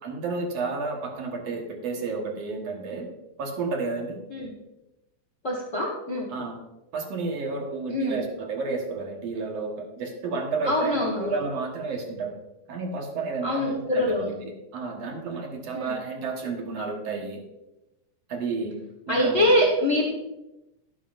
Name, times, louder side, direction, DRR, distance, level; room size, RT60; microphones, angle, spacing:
voice 1, 0.0-3.1 3.4-4.2 6.3-6.6 6.9-12.3 12.7-17.4 18.3-19.5, right 4 dB, 55° right, 2 dB, 2.2 m, -31 dB
voice 2, 5.4-6.3 7.9-8.3 10.6-11.3 13.4-14.3 15.7-16.0 19.1-20.1, left 1 dB, 90° left, -1 dB, 0.6 m, -24 dB
12.0 x 11.5 x 2.6 m, 0.95 s
omnidirectional pair, 4.0 m